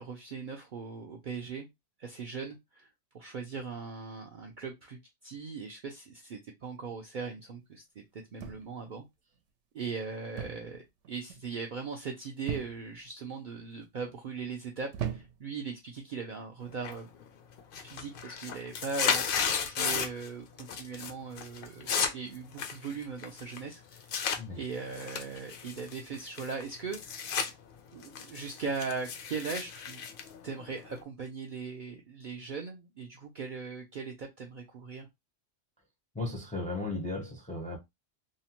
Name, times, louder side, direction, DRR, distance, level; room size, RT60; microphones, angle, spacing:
voice 1, 0.0-1.7 2.0-2.9 3.1-9.1 9.7-17.1 17.8-19.3 19.6-24.2 24.6-27.2 27.9-30.0 30.4-35.1, right 5 dB, 60° right, 0.5 m, -39 dB
sound 1, 8.4-8.9 10.4-10.8 11.0-11.5 12.5-13.0 13.7-14.1 14.9-15.6 16.5-16.8, right 9 dB, 75° right, 0.9 m, -38 dB
sound 2, 16.8-17.3 17.6-20.3 20.6-21.1 21.4-24.4 24.9-27.5 27.9-31.0, left 6 dB, 60° left, 0.6 m, -33 dB
voice 2, 36.1-37.8, left 2 dB, 10° left, 0.4 m, -35 dB
2.8 x 2.1 x 2.9 m
omnidirectional pair, 1.3 m